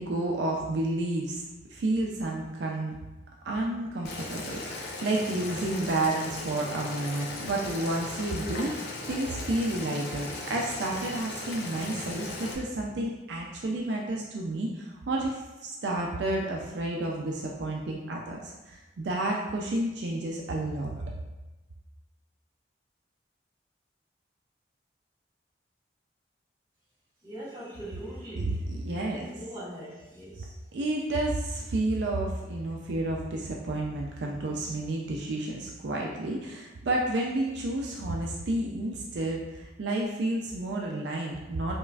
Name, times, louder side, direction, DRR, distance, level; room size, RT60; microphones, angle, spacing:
voice 1, 0.0-2.9 3.4-21.0 28.4-28.5 28.8-29.3 30.7-41.8, right 2 dB, 75° right, -1 dB, 0.4 m, -31 dB
Boiling, 4.0-12.5, left 2 dB, 60° left, 0.6 m, -38 dB
voice 2, 27.2-28.7 29.1-30.5, right 1 dB, 25° right, -10 dB, 1.4 m, -42 dB
5.2 x 2.5 x 2.3 m, 1.1 s
head